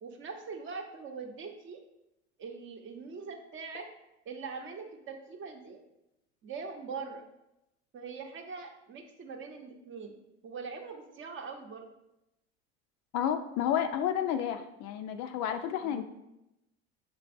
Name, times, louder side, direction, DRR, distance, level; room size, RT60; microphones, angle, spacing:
voice 1, 0.0-1.8 2.4-3.9 4.2-5.8 6.4-7.2 7.9-11.9 15.8-16.0, right 5 dB, 35° right, 4 dB, 0.8 m, -42 dB
voice 2, 13.1-16.0, left 9 dB, 50° left, 8 dB, 0.4 m, -31 dB
5.9 x 3.3 x 2.5 m, 0.89 s
hypercardioid pair, 90°, 34 cm